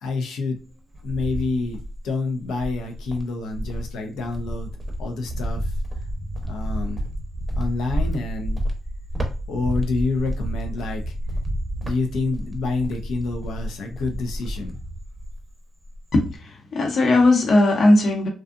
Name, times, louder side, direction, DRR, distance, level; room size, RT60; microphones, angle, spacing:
voice 1, 0.0-0.6 1.0-4.7 5.0-5.7 6.4-7.1 7.6-8.6 9.5-11.1 11.8-14.8, left 3 dB, 80° left, 4 dB, 0.5 m, -28 dB
Cricket, 0.6-2.1 2.6-15.5 15.8-16.4, equal, 15° right, 0.6 m, -30 dB
voice 2, 16.1-18.3, left 2 dB, 60° left, 1 dB, 0.9 m, -18 dB
2.6 x 2.3 x 2.4 m, 0.33 s
cardioid pair, 90°, 0 cm